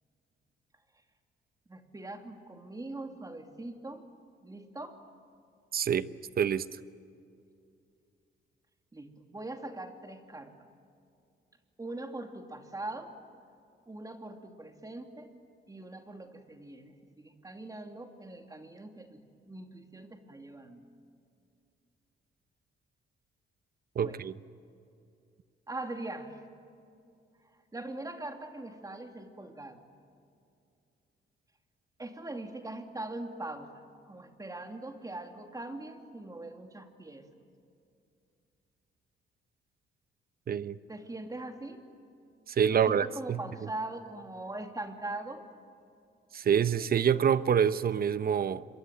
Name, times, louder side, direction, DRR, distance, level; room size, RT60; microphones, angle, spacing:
voice 1, 1.7-4.1 4.4-5.0 8.9-10.5 11.8-13.2 13.9-15.3 15.7-20.8 24.0-24.2 25.7-26.4 27.7-29.8 32.0-37.3 40.9-41.8 42.7-45.4, right 2 dB, 15° right, 5 dB, 2.8 m, -42 dB
voice 2, 5.7-6.1 6.4-6.6 24.0-24.4 40.5-40.8 42.5-43.4 46.3-48.6, right 8 dB, 50° right, 15 dB, 0.9 m, -26 dB
27.0 x 23.0 x 9.1 m, 2.5 s
cardioid pair, 90°, 20 cm